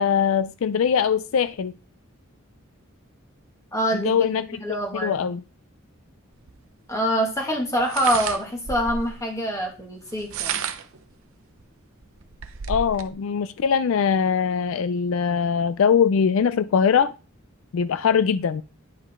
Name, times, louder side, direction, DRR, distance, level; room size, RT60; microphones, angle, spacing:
voice 1, 0.0-1.7 3.9-4.6 4.9-5.4 12.7-17.1 17.7-18.6, left 7 dB, 75° left, 0.4 m, -22 dB
voice 2, 3.7-4.2 4.6-5.2 6.9-10.6, equal, 15° left, 2.0 m, -25 dB
sound 1, 6.5-6.6 7.8-9.2 10.1-11.0 11.6-11.7 12.0-13.1, right 7 dB, 85° right, 0.8 m, -31 dB
10.0 x 5.2 x 3.7 m
head